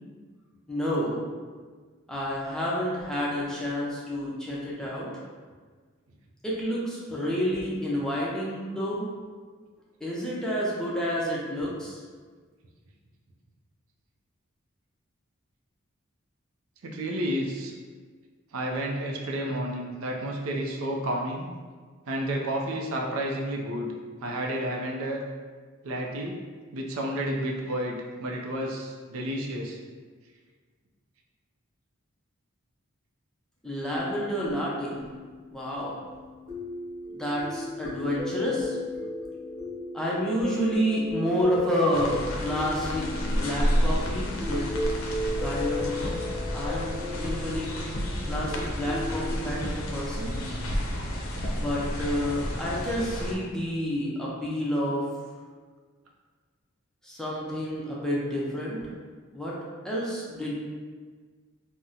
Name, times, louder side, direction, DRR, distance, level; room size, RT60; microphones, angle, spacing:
voice 1, 0.7-1.2 2.1-5.1 6.4-9.1 10.0-12.0 33.6-35.0 35.5-35.9 37.1-38.8 39.9-44.6 45.4-46.1 46.5-47.7 48.2-50.3 51.5-55.0 57.0-58.8 59.3-59.5 59.8-60.5, equal, 5° left, -6 dB, 0.5 m, -29 dB
voice 2, 16.8-17.7 18.5-21.5 22.1-23.9 24.2-25.2 25.8-26.4 26.7-29.8, right 1 dB, 85° right, 0 dB, 0.5 m, -31 dB
sound 1, 33.8-49.4, left 2 dB, 40° right, 0.8 m, -36 dB
sound 2, 41.9-53.3, equal, 75° left, 0.5 m, -31 dB
2.7 x 2.1 x 3.7 m, 1.5 s
head